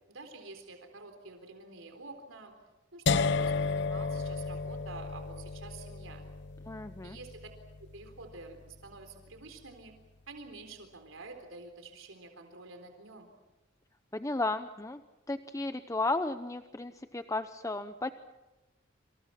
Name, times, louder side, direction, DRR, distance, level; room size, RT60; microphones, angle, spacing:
voice 1, 0.1-2.5 2.9-6.2 7.0-7.5 7.8-9.9 10.3-13.3, right 3 dB, 85° right, 5 dB, 3.9 m, -48 dB
sound 1, 3.1-9.0, left 4 dB, 60° left, 0.8 m, -33 dB
voice 2, 6.7-7.2 14.1-15.0 15.3-18.1, left 2 dB, 15° left, 10 dB, 0.8 m, -34 dB
28.0 x 27.5 x 5.9 m, 1.1 s
head